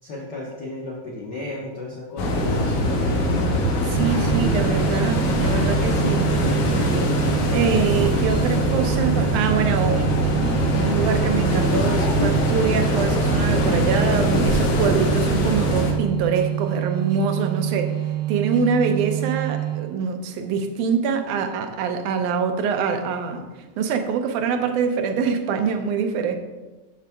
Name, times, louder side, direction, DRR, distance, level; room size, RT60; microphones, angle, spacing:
voice 1, 0.0-3.6, left 2 dB, 70° left, -5 dB, 1.0 m, -34 dB
sound 1, 2.2-15.9, equal, 85° left, 2.5 m, -22 dB
voice 2, 3.8-6.3 7.5-17.9 18.3-23.4 23.8-26.4, right 6 dB, 90° right, 6 dB, 2.2 m, -24 dB
sound 2, 4.0-20.1, right 12 dB, 70° right, 1.3 m, -27 dB
7.2 x 6.7 x 3.5 m, 1.2 s
omnidirectional pair, 3.4 m